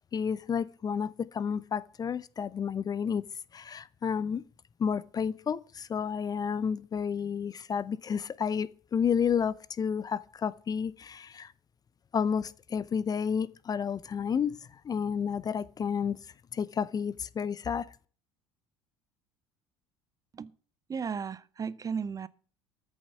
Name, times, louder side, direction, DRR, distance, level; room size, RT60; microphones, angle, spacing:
voice 1, 0.1-3.2 3.5-4.4 4.8-11.5 12.1-14.6 14.8-16.2 16.5-17.9, left 7 dB, 25° left, 0.6 m, -31 dB
voice 2, 20.9-22.3, right 6 dB, 25° right, 0.6 m, -35 dB
14.0 x 7.2 x 7.9 m
figure-of-eight pair, 60°, 14 cm